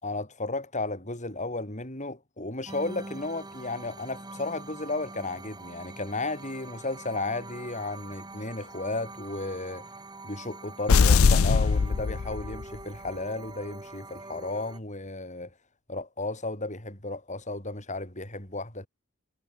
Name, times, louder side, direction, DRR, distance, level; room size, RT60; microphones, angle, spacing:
voice 1, 0.0-9.9 10.2-15.5 15.9-18.9, left 2 dB, 35° left, 6.5 m, -34 dB
sound 1, 2.7-14.8, right 2 dB, 20° right, 3.7 m, -44 dB
sound 2, 10.9-12.8, left 5 dB, 70° left, 0.5 m, -21 dB
head